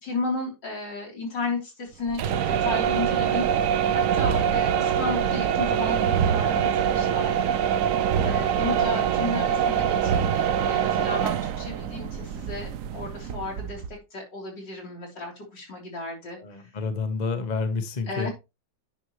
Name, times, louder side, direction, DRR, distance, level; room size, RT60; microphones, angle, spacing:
voice 1, 0.0-7.5 8.2-16.6 18.1-18.3, left 3 dB, 70° left, 4.1 m, -34 dB
sound 1, 2.1-14.0, right 8 dB, 70° right, 0.8 m, -24 dB
voice 2, 16.4-18.3, left 4 dB, 30° left, 0.9 m, -29 dB
9.8 x 6.2 x 3.1 m
omnidirectional pair, 2.0 m